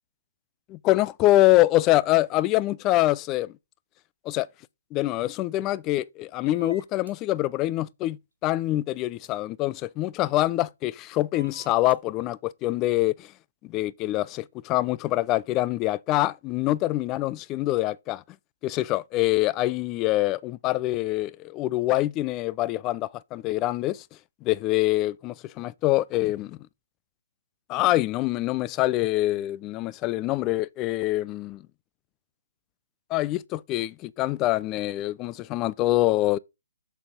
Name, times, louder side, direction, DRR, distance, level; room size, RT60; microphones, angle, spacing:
voice 1, 0.7-3.5 4.3-4.5 4.9-8.2 8.4-13.3 13.7-18.2 18.6-24.0 24.4-26.6 27.7-31.6 33.1-36.4, left 16 dB, 25° left, 0.4 m, -25 dB
sound 1, 6.5-7.1 9.2-9.3 11.3-11.9, right 3 dB, 90° right, 1.9 m, -48 dB
7.0 x 6.7 x 3.8 m
figure-of-eight pair, 135°, 0 cm